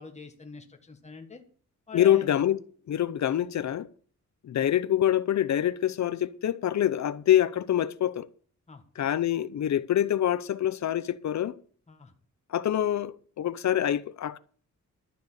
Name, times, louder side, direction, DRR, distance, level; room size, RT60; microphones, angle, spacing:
voice 1, 0.0-1.4 1.9-2.4 8.7-8.8 11.9-12.1, left 5 dB, 20° left, 1.6 m, -44 dB
voice 2, 1.9-2.6 2.9-3.9 4.4-8.3 9.0-11.5 12.5-14.4, left 11 dB, 65° left, 0.7 m, -25 dB
12.0 x 6.7 x 8.2 m
wide cardioid pair, 150°, 30 cm